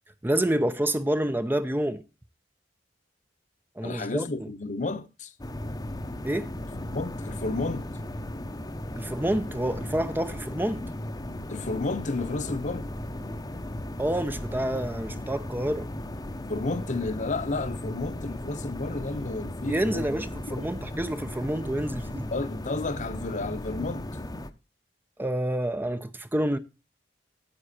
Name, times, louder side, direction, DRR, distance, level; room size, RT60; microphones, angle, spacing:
voice 1, 0.2-2.0 3.8-4.2 6.2-6.5 9.0-10.9 14.0-15.9 19.7-22.3 25.2-26.6, right 1 dB, 10° right, 0.6 m, -28 dB
voice 2, 3.8-5.3 6.9-7.9 11.5-12.9 16.5-20.7 22.3-24.1, left 3 dB, 45° left, 1.0 m, -32 dB
sound 1, 5.4-24.5, left 1 dB, 20° left, 0.8 m, -36 dB
9.7 x 7.9 x 4.2 m
head